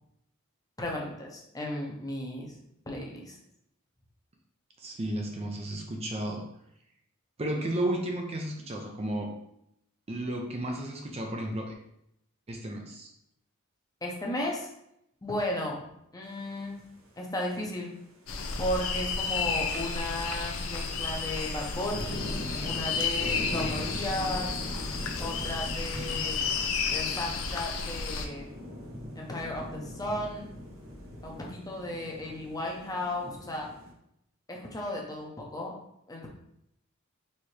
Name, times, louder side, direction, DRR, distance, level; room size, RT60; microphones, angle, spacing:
voice 1, 0.8-2.5 2.9-3.4 14.0-14.7 15.2-15.9 16.1-16.8 17.2-18.0 18.6-24.5 25.2-26.4 26.9-28.5 29.2-30.5 31.2-33.7 34.5-35.7 36.1-36.3, left 1 dB, 15° left, -1 dB, 0.8 m, -35 dB
voice 2, 4.8-6.4 7.4-9.3 10.1-11.7 12.5-13.1, right 1 dB, 30° right, 1 dB, 0.5 m, -33 dB
sound 1, 16.3-16.5 17.6-17.7 18.1-18.2 18.4-18.6 18.9-33.9, left 1 dB, 65° right, 1.1 m, -41 dB
sound 2, 18.3-28.3, left 5 dB, 75° left, 0.5 m, -32 dB
4.3 x 3.5 x 3.2 m, 0.78 s
head